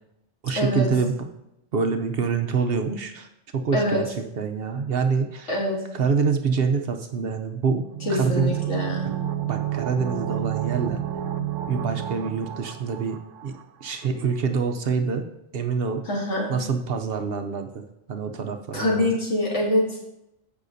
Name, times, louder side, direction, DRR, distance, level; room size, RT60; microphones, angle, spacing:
voice 1, 0.4-1.3 1.7-5.5 5.9-7.8 8.1-8.5 9.5-11.0 11.7-13.2 13.4-13.5 13.8-15.2 15.5-16.0 16.5-17.8 18.1-19.1, right 5 dB, 60° right, 6 dB, 0.8 m, -26 dB
voice 2, 5.5-5.9 8.1-9.2 16.1-16.5 18.7-20.1, left 1 dB, 75° left, -4 dB, 2.6 m, -25 dB
sound 1, 7.9-13.6 13.9-14.0, right 11 dB, 85° right, 0.9 m, -30 dB
14.5 x 5.6 x 2.7 m, 0.86 s
omnidirectional pair, 1.2 m